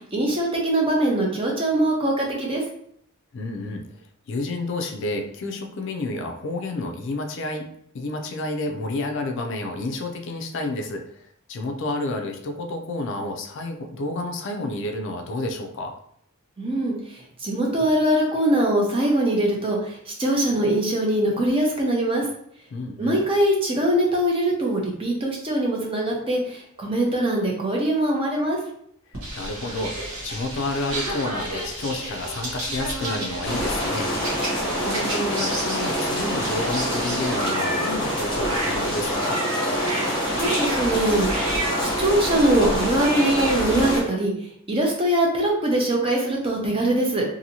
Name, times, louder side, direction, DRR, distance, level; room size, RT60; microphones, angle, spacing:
voice 1, 0.0-2.6 16.6-22.3 23.0-28.6 40.3-41.3 41.8-44.3 44.7-47.2, right 1 dB, 25° right, -1 dB, 0.6 m, -22 dB
voice 2, 3.3-3.8 4.3-7.7 7.9-15.9 22.7-23.2 29.4-34.1 34.8-39.4, left 2 dB, 55° left, 4 dB, 0.4 m, -30 dB
sound 1, 29.1-44.0, right 1 dB, 80° right, 0.9 m, -31 dB
sound 2, 33.4-44.0, equal, 20° left, 0.8 m, -26 dB
2.7 x 2.6 x 2.7 m, 0.69 s
head